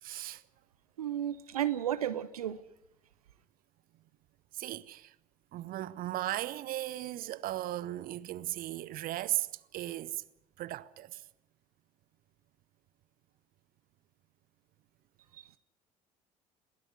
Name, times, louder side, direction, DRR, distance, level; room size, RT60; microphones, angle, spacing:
voice 1, 0.0-0.4 4.5-5.1 5.5-10.2 10.6-11.2, right 14 dB, 50° right, 0.8 m, -37 dB
voice 2, 1.0-2.6 15.3-15.4, right 11 dB, 80° right, 0.8 m, -33 dB
22.0 x 16.0 x 9.5 m
figure-of-eight pair, 60°, 19 cm